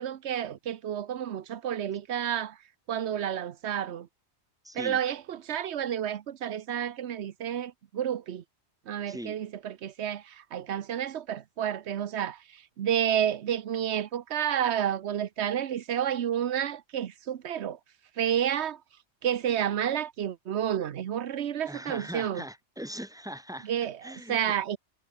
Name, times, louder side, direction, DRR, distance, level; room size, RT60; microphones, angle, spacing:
voice 1, 0.0-2.6 2.9-4.1 4.7-8.4 8.9-17.8 18.2-18.8 19.2-22.4 23.6-24.8, right 9 dB, 75° right, 1.1 m, -30 dB
voice 2, 4.6-5.0 9.1-9.4 21.7-23.7 24.0-24.5, equal, 5° right, 2.7 m, -40 dB
omnidirectional pair, 1.2 m